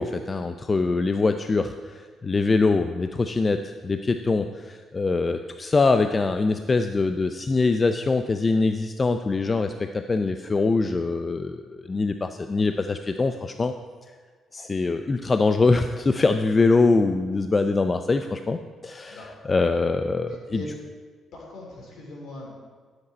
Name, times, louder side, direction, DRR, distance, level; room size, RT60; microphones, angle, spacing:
voice 1, 0.0-13.7 14.5-18.6 18.8-20.6, left 3 dB, 30° left, 8 dB, 0.4 m, -23 dB
voice 2, 20.2-20.7 21.3-22.5, left 1 dB, 65° left, -1 dB, 3.0 m, -40 dB
10.5 x 7.9 x 4.2 m, 1.5 s
cardioid pair, 90°, 0 cm